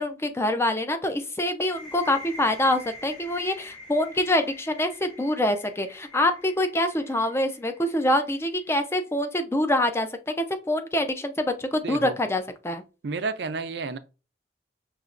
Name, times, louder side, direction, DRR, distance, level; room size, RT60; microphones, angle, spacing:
voice 1, 0.0-12.8, left 1 dB, 15° left, 0.4 m, -25 dB
sound 1, 1.6-9.1, left 2 dB, 30° left, 2.2 m, -46 dB
voice 2, 11.8-12.2 13.0-14.0, right 4 dB, 70° right, 0.5 m, -31 dB
5.5 x 3.0 x 2.5 m
head